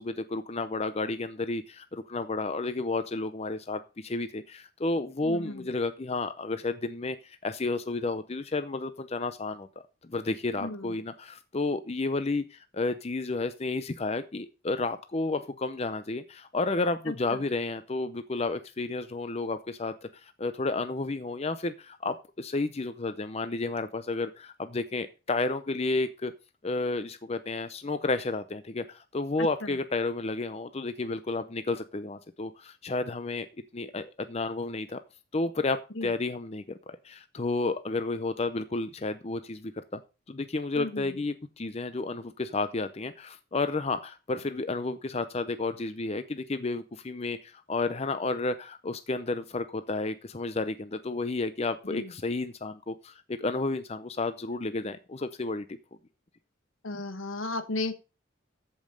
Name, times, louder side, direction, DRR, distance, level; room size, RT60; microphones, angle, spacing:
voice 1, 0.0-9.7 10.1-26.3 26.6-33.5 33.7-35.0 35.3-40.0 40.3-55.6, left 3 dB, 30° left, 11 dB, 0.6 m, -31 dB
voice 2, 5.2-5.6 10.6-10.9 17.1-17.2 36.0-36.1 40.8-41.0 51.9-52.1 56.8-57.9, left 2 dB, 80° left, 10 dB, 1.4 m, -34 dB
14.0 x 5.3 x 5.2 m, 0.32 s
head